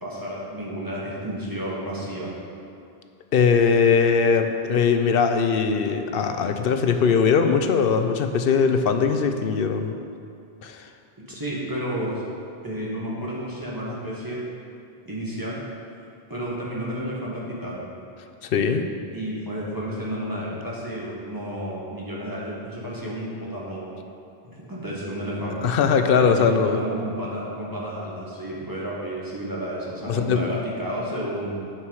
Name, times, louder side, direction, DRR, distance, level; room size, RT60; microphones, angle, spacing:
voice 1, 0.0-2.3 11.3-12.3 12.6-14.4 15.0-15.6 16.3-17.9 19.1-23.9 24.4-25.7 26.1-31.5, equal, 20° right, -6 dB, 1.6 m, -31 dB
voice 2, 3.3-9.9 10.6-10.9 18.4-18.9 25.6-26.8 30.1-30.5, left 6 dB, 65° left, 7 dB, 0.8 m, -20 dB
8.7 x 6.1 x 4.8 m, 2.5 s
omnidirectional pair, 1.0 m